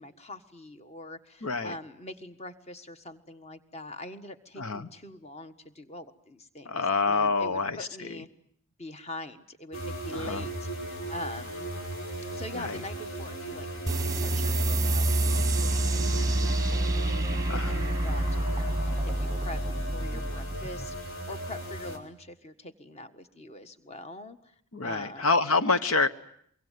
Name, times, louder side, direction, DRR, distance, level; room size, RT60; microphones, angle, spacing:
voice 1, 0.0-8.3 8.8-11.7 12.3-13.7 14.1-24.5 24.8-25.3, left 1 dB, 30° left, 9 dB, 1.5 m, -43 dB
voice 2, 1.4-1.8 4.6-4.9 6.6-8.2 10.1-10.5 12.5-12.8 17.5-17.8 24.7-26.1, left 4 dB, 75° left, 11 dB, 1.1 m, -27 dB
sound 1, 9.7-22.0, right 1 dB, 60° left, 5.3 m, -37 dB
sound 2, 13.9-21.0, right 1 dB, 15° right, 1.0 m, -27 dB
24.5 x 23.5 x 9.4 m, 0.67 s
head